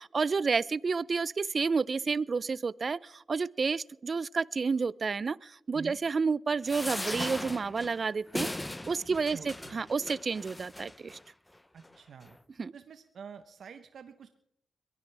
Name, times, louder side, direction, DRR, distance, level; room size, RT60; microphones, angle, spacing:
voice 1, 0.0-8.5 8.9-11.2 12.6-12.7, right 4 dB, 50° right, 22 dB, 0.5 m, -30 dB
sound 1, 6.6-11.2 11.8-12.0 12.2-12.3, left 1 dB, 15° left, 0.7 m, -38 dB
voice 2, 9.1-9.8 11.7-12.4 12.7-14.3, right 6 dB, 70° right, 9 dB, 1.0 m, -47 dB
22.5 x 16.5 x 3.4 m, 0.75 s
supercardioid pair, 55°, 0 cm